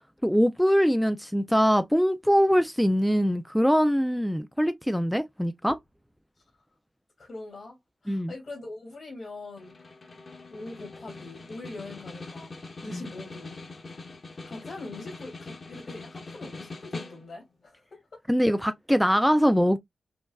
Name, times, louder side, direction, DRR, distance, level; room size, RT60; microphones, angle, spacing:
voice 1, 0.2-5.8 8.1-8.3 12.9-13.0 18.3-19.8, equal, ahead, 0.3 m, -23 dB
voice 2, 7.2-7.8 8.0-9.8 10.5-12.5 12.8-13.6 14.1-18.2, left 2 dB, 60° left, 2.2 m, -42 dB
Snare drum, 9.6-17.5, left 3 dB, 45° left, 1.2 m, -42 dB
5.2 x 2.3 x 2.2 m
wide cardioid pair, 105°, 0 cm